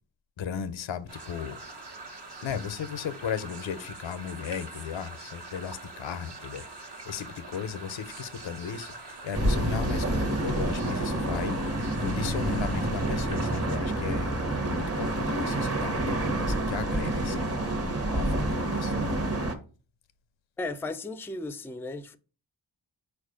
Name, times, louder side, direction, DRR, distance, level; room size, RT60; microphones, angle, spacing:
voice 1, 0.4-1.6 2.4-14.3 14.6-19.2, left 7 dB, 80° left, 0.5 m, -36 dB
sound 1, 1.1-13.8, right 2 dB, 60° right, 1.1 m, -44 dB
sound 2, 9.3-19.5, right 1 dB, 30° right, 0.9 m, -28 dB
voice 2, 20.6-22.2, left 2 dB, 5° left, 0.3 m, -35 dB
4.5 x 2.4 x 4.9 m
cardioid pair, 45°, 45 cm